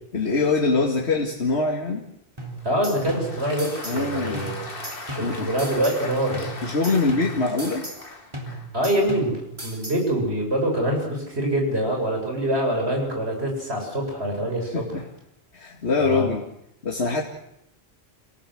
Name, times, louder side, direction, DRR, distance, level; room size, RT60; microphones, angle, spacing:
voice 1, 0.1-2.0 3.8-4.4 5.2-5.5 6.6-7.9 14.7-15.0 15.5-16.4 16.8-17.2, left 3 dB, 80° left, -1 dB, 2.5 m, -23 dB
sound 1, 2.4-4.1 4.3-6.1 6.3-8.1 8.3-10.1, right 1 dB, 25° right, 3.9 m, -36 dB
Applause, 2.6-8.8, left 2 dB, 60° left, 2.4 m, -39 dB
voice 2, 2.6-4.6 5.1-6.5 8.7-14.9 16.0-16.3, right 1 dB, 75° right, 2 dB, 7.5 m, -25 dB
28.0 x 18.0 x 7.8 m, 0.79 s
omnidirectional pair, 1.1 m